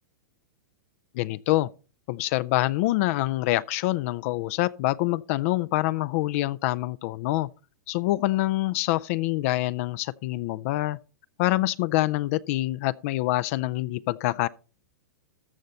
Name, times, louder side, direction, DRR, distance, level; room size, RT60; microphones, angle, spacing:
voice 1, 1.1-1.7 2.1-7.5 7.9-11.0 11.4-14.5, left 17 dB, 50° left, 0.4 m, -26 dB
13.5 x 6.5 x 4.2 m
hypercardioid pair, 125°, 10 cm